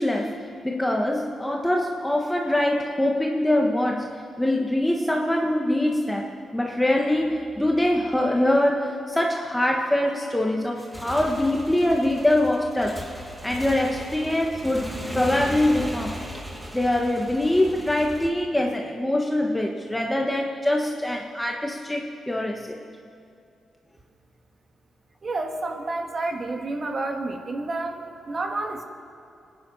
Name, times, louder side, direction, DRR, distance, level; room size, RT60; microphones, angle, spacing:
voice 1, 0.0-13.0 13.4-16.2 16.7-22.8, left 1 dB, 5° left, 0 dB, 1.5 m, -24 dB
Motorcycle / Engine, 10.8-18.3, equal, 10° right, 2.2 m, -37 dB
voice 2, 25.2-28.8, right 2 dB, 40° right, 4 dB, 2.0 m, -30 dB
24.0 x 10.5 x 5.7 m, 2.5 s
cardioid pair, 75°, 0 cm